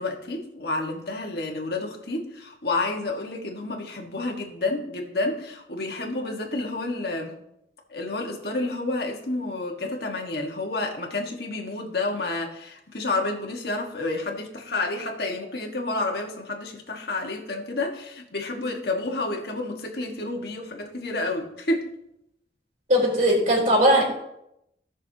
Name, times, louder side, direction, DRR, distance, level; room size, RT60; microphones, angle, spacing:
voice 1, 0.0-7.3 7.9-21.9, left 2 dB, 60° left, 1 dB, 1.7 m, -30 dB
voice 2, 22.9-24.0, equal, 40° right, -1 dB, 4.3 m, -19 dB
17.5 x 6.4 x 3.0 m, 0.82 s
head